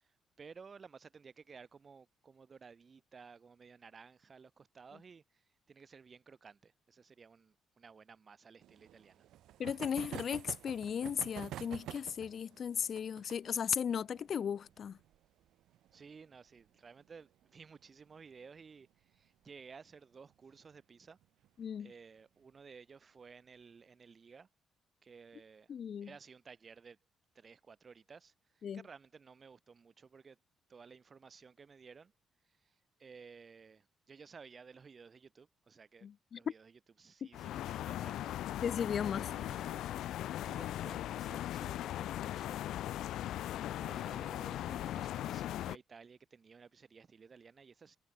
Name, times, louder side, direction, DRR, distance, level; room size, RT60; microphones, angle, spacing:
voice 1, 0.0-9.3 15.9-21.2 21.8-24.5 25.0-25.7 26.0-27.0 27.3-30.4 30.7-32.1 32.5-36.1 36.4-38.6 39.2-39.9 40.4-42.6 43.7-48.0, right 5 dB, 40° right, 7.7 m, -56 dB
sound 1, 8.6-17.8 18.1-18.2 18.4-18.5 18.8-18.9 20.3-20.6 21.2-21.7, right 13 dB, 80° right, 3.8 m, -49 dB
voice 2, 9.6-15.0 21.6-21.9 25.7-26.1 28.6-28.8 36.0-36.4 37.2-37.3 38.6-39.3, left 8 dB, 55° left, 0.5 m, -36 dB
sound 2, 37.3-45.8, left 13 dB, 80° left, 0.8 m, -39 dB
cardioid pair, 90°, 0 cm